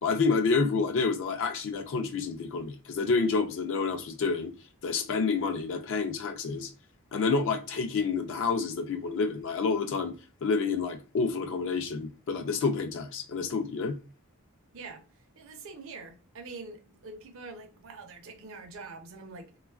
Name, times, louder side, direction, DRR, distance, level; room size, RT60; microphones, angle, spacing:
voice 1, 0.0-4.5 4.8-6.7 7.1-10.1 10.4-14.0, left 4 dB, 60° left, 0.4 m, -28 dB
voice 2, 15.4-19.5, right 3 dB, 65° right, 0.5 m, -44 dB
3.0 x 2.3 x 2.3 m
head